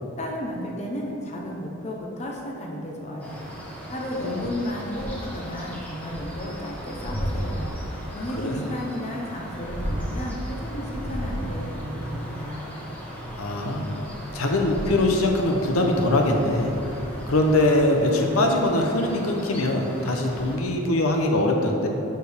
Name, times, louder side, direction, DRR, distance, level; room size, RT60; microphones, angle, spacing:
voice 1, 0.2-3.4 3.9-7.7 8.1-12.7, left 1 dB, 30° left, -1 dB, 0.8 m, -33 dB
sound 1, 3.2-20.6, equal, 5° left, 1.2 m, -35 dB
voice 2, 13.4-14.0 14.3-16.7 17.3-21.9, left 1 dB, 80° left, 2 dB, 0.8 m, -22 dB
11.0 x 4.6 x 3.5 m, 2.9 s
head